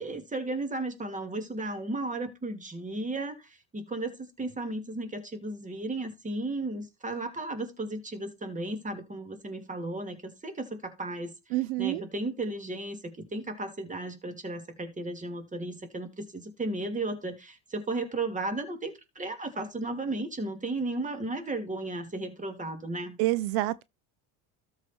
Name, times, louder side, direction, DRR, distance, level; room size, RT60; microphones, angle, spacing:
voice 1, 0.0-11.3 11.8-23.2, right 2 dB, 20° right, 2.6 m, -34 dB
voice 2, 11.5-12.0 23.2-23.8, right 17 dB, 75° right, 0.7 m, -27 dB
13.0 x 5.0 x 4.5 m
supercardioid pair, 115°, 42 cm